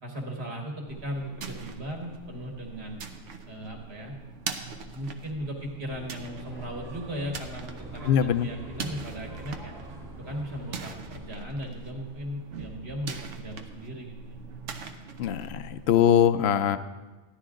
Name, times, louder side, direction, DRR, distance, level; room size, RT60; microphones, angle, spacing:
voice 1, 0.0-3.0 3.5-4.2 4.9-9.7 10.2-14.4, equal, 60° right, 1 dB, 2.0 m, -37 dB
sound 1, 0.9-16.2, right 5 dB, 80° right, 1.2 m, -42 dB
sound 2, 5.9-11.3, right 1 dB, 45° right, 1.8 m, -44 dB
voice 2, 8.0-8.5 15.2-16.8, left 9 dB, 65° left, 12 dB, 0.8 m, -22 dB
14.5 x 11.0 x 3.8 m, 1.2 s
omnidirectional pair, 1.2 m